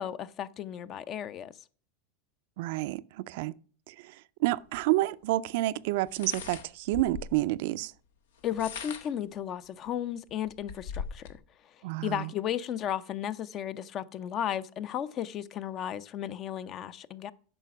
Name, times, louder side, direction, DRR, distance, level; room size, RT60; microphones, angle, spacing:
voice 1, 0.0-1.5 8.4-11.4 12.0-17.3, left 10 dB, 40° left, 0.6 m, -34 dB
voice 2, 2.6-3.5 3.9-7.9 11.8-12.3, right 17 dB, 65° right, 0.4 m, -29 dB
sound 1, 4.7-4.8 6.1-7.4 8.4-9.3 9.9-10.0 10.3-11.4, left 6 dB, 90° left, 1.2 m, -40 dB
9.0 x 6.0 x 5.9 m
supercardioid pair, 120°, 0 cm